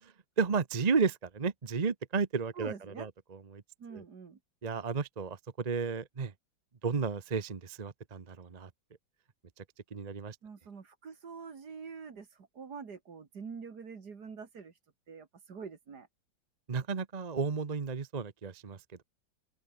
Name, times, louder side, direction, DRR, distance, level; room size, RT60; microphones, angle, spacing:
voice 1, 0.0-3.6 3.9-4.0 4.6-6.3 6.8-8.7 9.6-9.7 9.9-10.4 16.7-19.0, right 5 dB, 30° right, 0.8 m, -33 dB
voice 2, 2.5-3.1 3.8-4.4 10.4-14.8 15.1-16.1, right 5 dB, 55° right, 2.7 m, -45 dB
open air
omnidirectional pair, 2.1 m